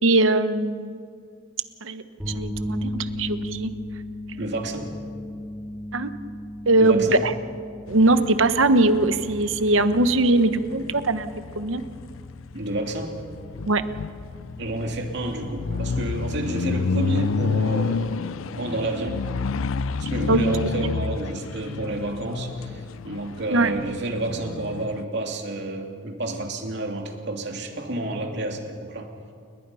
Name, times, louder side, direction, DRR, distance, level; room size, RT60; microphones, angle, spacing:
voice 1, 0.0-1.0 1.8-3.7 5.9-6.1 6.7-7.3 7.9-11.3 11.5-11.8 13.7-13.8 20.3-20.4 23.5-23.7, right 2 dB, 75° right, 11 dB, 1.1 m, -21 dB
sound 1, 2.2-18.1, left 1 dB, 5° right, 4.9 m, -38 dB
voice 2, 4.3-4.9 6.8-7.2 12.5-13.1 14.6-18.2 18.5-19.2 20.0-29.1, right 2 dB, 55° right, 3 dB, 2.8 m, -30 dB
sound 2, 7.9-25.0, left 4 dB, 80° left, 0.5 m, -30 dB
30.0 x 20.0 x 5.6 m, 2.2 s
head